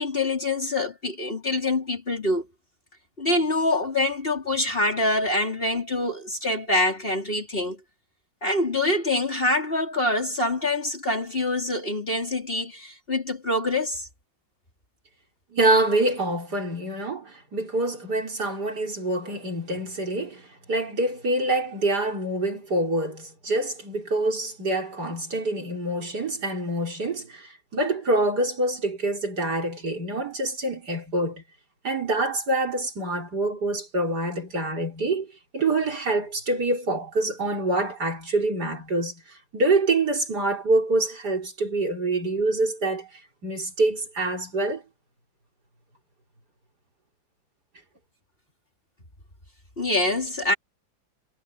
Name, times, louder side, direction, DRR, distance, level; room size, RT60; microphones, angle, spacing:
voice 1, 0.0-2.5 3.2-7.8 8.4-14.1 49.8-50.5, left 2 dB, 25° left, 3.6 m, -25 dB
voice 2, 15.5-31.4 31.8-44.8, right 2 dB, 55° right, 4.7 m, -26 dB
omnidirectional pair, 2.1 m